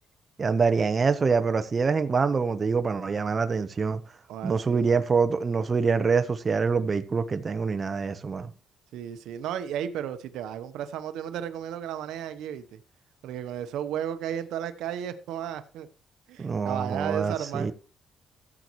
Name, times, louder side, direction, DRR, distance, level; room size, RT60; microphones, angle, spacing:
voice 1, 0.4-4.0 4.4-8.5 16.4-17.7, right 5 dB, 35° right, 1.0 m, -25 dB
voice 2, 4.3-5.0 8.9-12.8 13.2-15.9 16.3-17.7, right 10 dB, 85° right, 1.0 m, -34 dB
15.0 x 8.4 x 3.1 m
cardioid pair, 90°, 0 cm